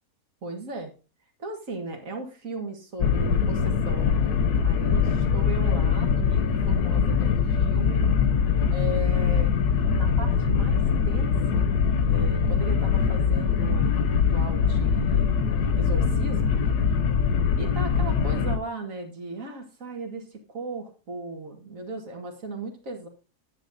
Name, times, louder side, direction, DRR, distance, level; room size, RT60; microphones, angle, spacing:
voice 1, 0.4-0.9 1.4-4.1 4.6-8.0 8.7-9.5 9.9-11.7 12.0-15.4 15.8-16.6 17.6-23.1, right 2 dB, 55° right, 3 dB, 2.2 m, -37 dB
sound 1, 3.0-18.6, left 6 dB, 85° left, 1.4 m, -23 dB
9.7 x 8.6 x 2.7 m, 0.33 s
omnidirectional pair, 1.6 m